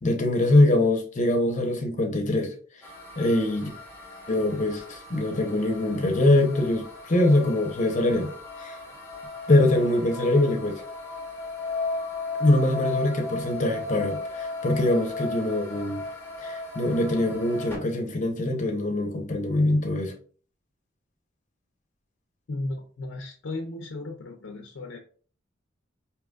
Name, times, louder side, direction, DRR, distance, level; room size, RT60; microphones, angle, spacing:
voice 1, 0.0-2.5 3.2-3.7 4.3-8.3 8.6-8.8 9.5-10.8 12.4-16.0 16.4-20.1, left 1 dB, 40° left, 0.7 m, -23 dB
sound 1, 2.8-17.8, left 3 dB, 10° left, 0.8 m, -36 dB
voice 2, 22.5-25.0, left 2 dB, 75° left, 0.6 m, -35 dB
4.9 x 2.9 x 2.3 m
head